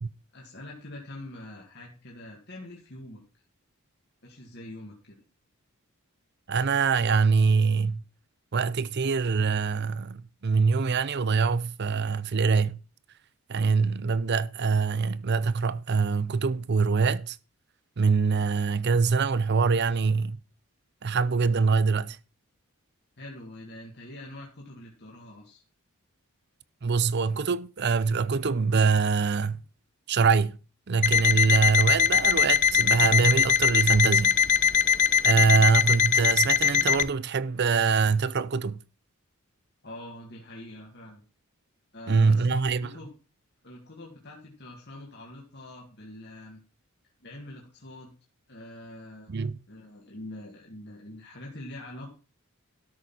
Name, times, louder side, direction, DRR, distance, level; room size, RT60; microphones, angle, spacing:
voice 1, 0.3-3.2 4.2-5.2 23.2-25.6 39.8-41.2 41.9-43.1 43.6-46.6 47.2-48.1 48.5-49.3 49.7-52.1, left 1 dB, 50° left, 2.2 m, -44 dB
voice 2, 6.5-8.0 8.5-12.8 13.5-17.4 18.0-20.4 21.0-22.2 26.8-29.6 30.1-30.6 30.9-34.4 35.2-38.8 42.1-42.9 49.3-49.6, right 5 dB, 50° right, 0.5 m, -24 dB
Alarm, 31.0-37.1, left 7 dB, 35° left, 0.4 m, -22 dB
13.0 x 6.7 x 4.3 m
head